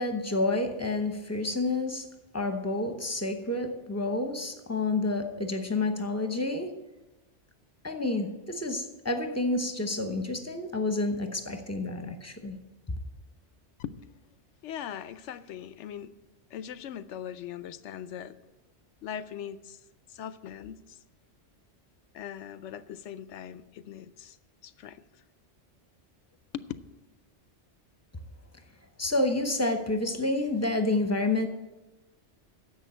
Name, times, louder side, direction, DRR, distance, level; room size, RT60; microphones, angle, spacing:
voice 1, 0.0-2.1 2.3-6.7 7.8-12.6 29.0-31.5, left 2 dB, 15° left, 6 dB, 0.9 m, -29 dB
voice 2, 14.6-16.2 16.5-18.4 19.0-19.8 20.1-21.0 22.1-24.4 24.6-25.0 26.5-26.6, left 9 dB, 85° left, 14 dB, 0.9 m, -40 dB
10.5 x 7.5 x 7.5 m, 1.1 s
omnidirectional pair, 1.2 m